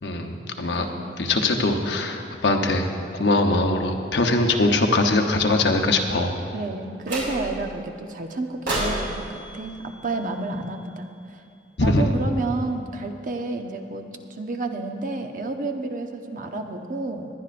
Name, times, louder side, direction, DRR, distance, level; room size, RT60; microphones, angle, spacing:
voice 1, 0.0-0.8 1.2-2.9 3.1-6.3 11.8-12.0, left 2 dB, 70° left, 4 dB, 0.9 m, -21 dB
voice 2, 0.7-1.3 6.5-11.4 11.8-17.3, right 2 dB, 50° right, 5 dB, 0.8 m, -30 dB
sound 1, 7.0-7.7 8.7-10.9, right 1 dB, 75° right, 3.2 m, -31 dB
20.0 x 10.5 x 2.5 m, 2.4 s
head